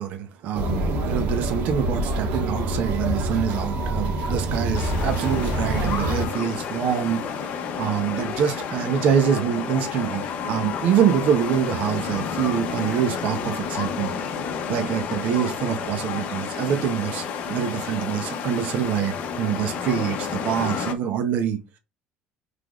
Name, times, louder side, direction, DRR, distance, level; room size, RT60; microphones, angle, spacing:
voice 1, 0.0-7.5 7.8-14.1 14.7-21.8, right 8 dB, 50° right, 0.7 m, -25 dB
sound 1, 0.5-6.3, right 1 dB, 70° right, 1.4 m, -26 dB
sound 2, 4.7-20.9, left 6 dB, 45° left, 0.7 m, -30 dB
5.7 x 3.3 x 2.4 m
cardioid pair, 165°, 3 cm